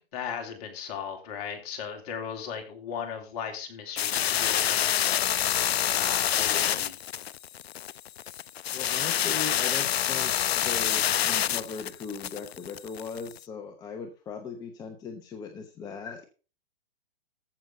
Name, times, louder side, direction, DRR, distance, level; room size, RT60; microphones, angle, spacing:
voice 1, 0.1-7.0, left 7 dB, 40° left, 3 dB, 3.2 m, -37 dB
sound 1, 4.0-13.4, left 11 dB, 80° left, 0.6 m, -27 dB
voice 2, 8.7-16.2, left 5 dB, 10° left, 5 dB, 1.0 m, -39 dB
14.5 x 6.4 x 5.4 m, 0.36 s
hypercardioid pair, 145°, 31 cm